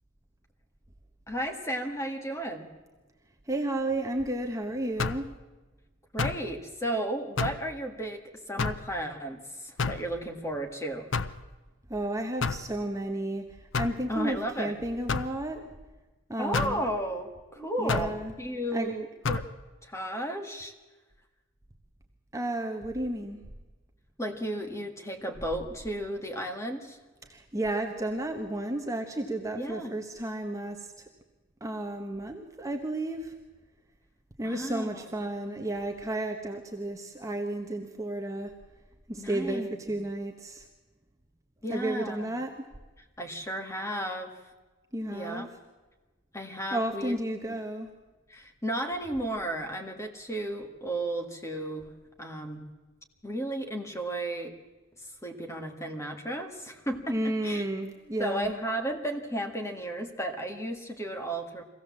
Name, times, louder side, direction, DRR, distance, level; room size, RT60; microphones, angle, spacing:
voice 1, 1.3-2.7 6.1-11.1 14.1-14.7 16.4-19.5 19.8-20.7 24.2-27.0 29.5-29.9 34.4-35.1 39.2-39.8 41.6-42.3 43.2-44.3 45.1-45.5 46.3-47.2 47.5-47.6 48.3-51.9 52.2-52.6 53.2-54.5 55.0-57.6 58.2-61.6, right 1 dB, 15° left, 4 dB, 1.8 m, -34 dB
voice 2, 3.5-5.4 11.9-15.7 16.3-16.8 17.6-18.3 18.7-18.9 22.3-23.4 27.3-31.0 31.6-33.4 34.4-38.5 39.1-40.7 41.7-42.5 44.9-45.5 46.7-47.9 57.1-58.5, right 1 dB, 15° right, 3 dB, 1.1 m, -32 dB
sound 1, 5.0-5.3 6.2-6.5 7.4-7.7 8.6-8.9 9.8-10.1 11.1-11.4 12.4-12.7 13.7-14.0 15.1-15.3 16.5-16.8 17.9-18.2 19.2-19.5, left 4 dB, 55° left, 0.7 m, -29 dB
23.5 x 16.0 x 7.4 m, 1.2 s
head